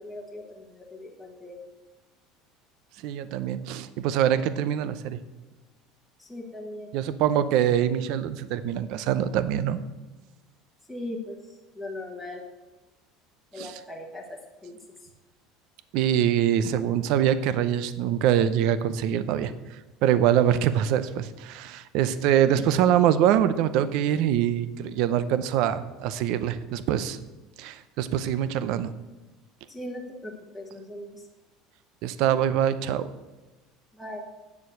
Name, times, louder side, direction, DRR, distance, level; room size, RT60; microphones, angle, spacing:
voice 1, 0.0-1.6 6.2-6.9 10.9-12.4 13.5-15.1 22.4-22.7 29.7-31.2 33.9-34.2, left 1 dB, ahead, -1 dB, 1.4 m, -39 dB
voice 2, 3.0-5.2 6.9-9.8 13.6-13.7 15.9-27.2 27.6-28.9 32.0-33.1, right 10 dB, 60° right, 13 dB, 0.7 m, -24 dB
8.5 x 7.1 x 7.8 m, 1.1 s
cardioid pair, 165°, 0 cm